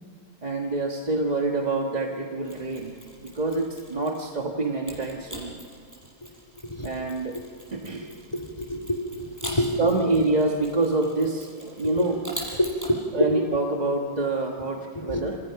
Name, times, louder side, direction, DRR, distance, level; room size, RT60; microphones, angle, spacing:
voice 1, 0.4-5.6 6.8-7.4 7.7-8.1 9.4-12.2 13.1-15.4, right 2 dB, 25° right, 1 dB, 1.3 m, -26 dB
Mechanisms, 2.4-4.4 4.9-12.9, equal, 10° right, 6.8 m, -42 dB
voice 2, 8.0-10.1 12.0-12.1 12.6-13.3 14.9-15.3, left 1 dB, 15° left, 5 dB, 2.7 m, -28 dB
28.0 x 26.5 x 5.9 m, 2.6 s
omnidirectional pair, 2.1 m